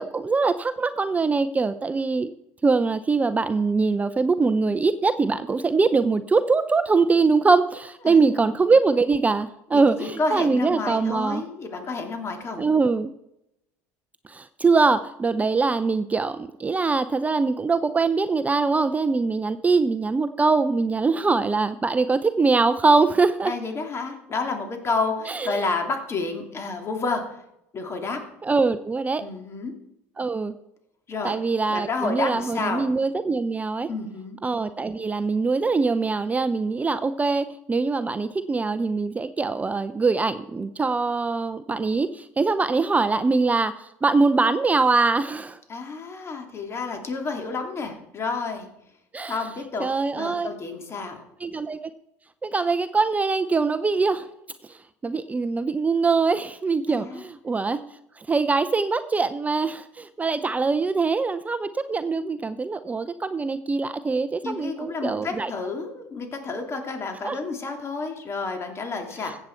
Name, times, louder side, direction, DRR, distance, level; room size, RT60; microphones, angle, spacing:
voice 1, 0.0-2.3 2.6-11.4 12.6-13.1 14.3-23.5 25.3-25.6 28.4-29.2 30.2-30.5 31.2-33.9 34.4-45.6 49.1-49.4 49.8-50.5 51.4-51.8 52.4-54.3 54.7-57.8 58.2-65.5 67.2-67.4, right 4 dB, 20° right, 12 dB, 0.5 m, -23 dB
voice 2, 8.0-8.5 9.7-12.6 23.4-27.4 27.7-28.2 29.2-29.7 31.1-31.4 31.7-32.9 33.9-34.4 45.7-48.7 49.3-49.9 50.2-51.2 56.9-57.2 64.4-69.4, left 3 dB, 35° left, 4 dB, 2.6 m, -30 dB
15.0 x 8.2 x 4.5 m, 0.82 s
supercardioid pair, 85°, 8 cm